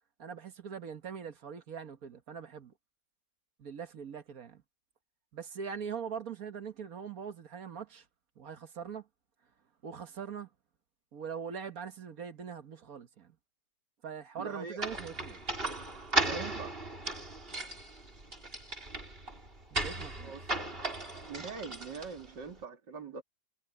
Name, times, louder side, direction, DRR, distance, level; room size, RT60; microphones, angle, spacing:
voice 1, 0.2-2.7 3.6-4.6 5.3-8.0 8.4-9.0 9.8-10.5 11.1-13.3 14.0-15.4 16.1-16.7 19.8-20.3, right 6 dB, 55° right, 1.7 m, -42 dB
voice 2, 14.4-15.0 16.2-16.7 19.8-19.9 20.2-20.4 21.3-23.2, right 5 dB, 90° right, 3.3 m, -43 dB
sound 1, 14.8-22.4, right 2 dB, 30° right, 4.2 m, -36 dB
omnidirectional pair, 1.8 m